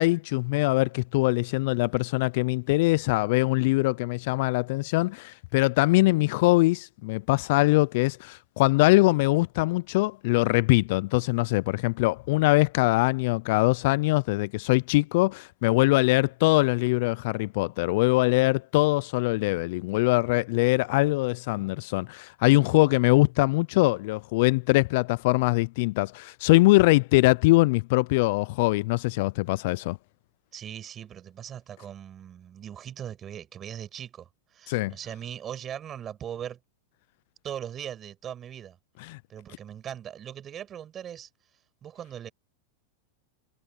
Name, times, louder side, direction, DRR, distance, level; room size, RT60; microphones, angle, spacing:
voice 1, 0.0-30.0 34.7-34.9 39.1-39.2, left 22 dB, 60° left, 0.3 m, -22 dB
voice 2, 30.5-36.6 37.4-38.8 39.3-41.3 41.8-42.3, right 9 dB, 30° right, 7.9 m, -39 dB
hypercardioid pair, 125°, 0 cm